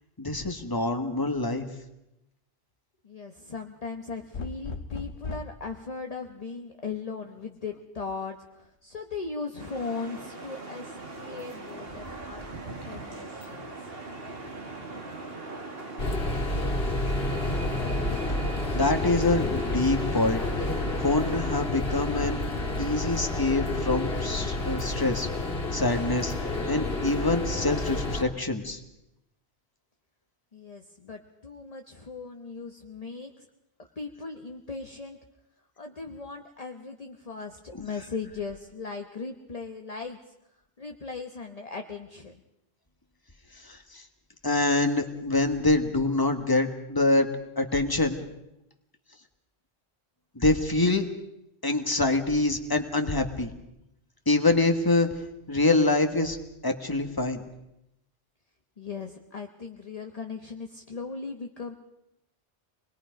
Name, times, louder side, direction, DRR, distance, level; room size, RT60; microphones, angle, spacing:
voice 1, 0.2-1.7 18.7-20.4 21.0-22.4 22.8-25.3 25.7-26.3 26.7-28.8 37.8-37.9 43.6-44.0 44.4-47.3 47.6-48.2 50.3-51.1 51.6-53.5 54.3-55.1 55.5-57.4, left 2 dB, 20° left, 6 dB, 1.5 m, -25 dB
voice 2, 3.0-12.5 12.8-13.7 30.5-33.5 34.0-35.2 35.8-40.3 40.8-42.4 58.8-61.7, left 4 dB, 35° left, 4 dB, 1.1 m, -38 dB
sound 1, 4.3-5.6 7.2-7.8, left 4 dB, 85° left, 1.3 m, -37 dB
sound 2, 9.6-21.6, right 2 dB, 65° right, 2.3 m, -41 dB
sound 3, 16.0-28.2, left 2 dB, 60° left, 2.5 m, -29 dB
26.0 x 20.5 x 5.2 m, 0.85 s
omnidirectional pair, 1.1 m